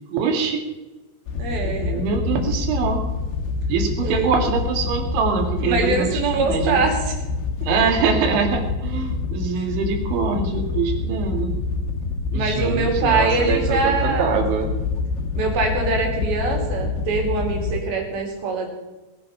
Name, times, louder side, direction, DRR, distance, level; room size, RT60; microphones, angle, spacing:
voice 1, 0.1-0.6 1.6-3.0 3.7-6.8 7.7-11.5 12.3-14.7, right 5 dB, 85° right, 3 dB, 4.6 m, -24 dB
Wind / Boat Water vehicle, 1.3-17.8, left 4 dB, 85° left, 3.9 m, -26 dB
voice 2, 1.4-2.6 4.0-4.3 5.6-7.1 12.3-14.5 15.3-18.7, right 4 dB, 60° right, 2 dB, 4.5 m, -24 dB
19.5 x 10.5 x 5.7 m, 1.1 s
omnidirectional pair, 5.2 m